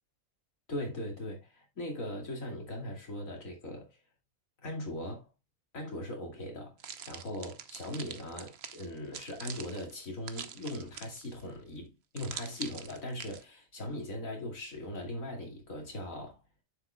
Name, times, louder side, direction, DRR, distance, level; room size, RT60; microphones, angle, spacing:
voice 1, 0.7-3.9 4.6-5.3 5.7-6.8 7.1-16.4, left 1 dB, 85° left, 2.9 m, -39 dB
sound 1, 6.8-11.4 12.2-13.4, right 7 dB, 55° right, 1.0 m, -44 dB
9.2 x 7.3 x 2.2 m
omnidirectional pair, 1.4 m